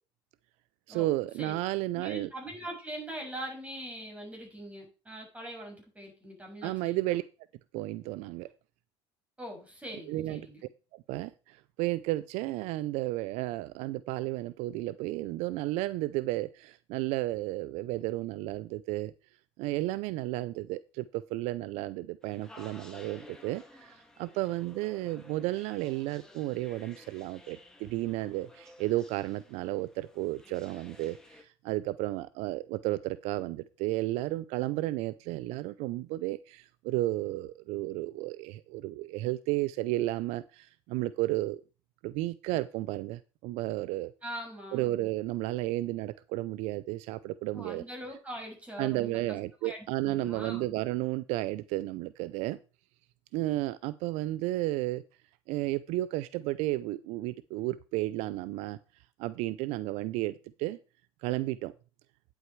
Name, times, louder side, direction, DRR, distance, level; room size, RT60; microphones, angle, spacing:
voice 1, 0.9-2.3 6.6-7.2 7.7-8.5 10.1-10.5 11.1-11.3 11.8-19.1 19.6-23.6 24.2-31.2 31.6-41.6 42.0-44.1 44.7-47.8 48.8-52.6 53.3-55.0 55.5-58.8 59.2-60.3 60.6-60.8 61.2-61.7, right 17 dB, 70° right, 17 dB, 0.5 m, -32 dB
voice 2, 1.9-7.2 9.4-10.6 44.2-44.8 47.5-49.4 49.6-49.8 50.0-50.8, right 1 dB, 10° right, 0 dB, 6.8 m, -42 dB
sound 1, 22.2-31.4, left 2 dB, 5° left, 2.6 m, -54 dB
9.3 x 8.1 x 4.6 m, 0.32 s
supercardioid pair, 95°, 12 cm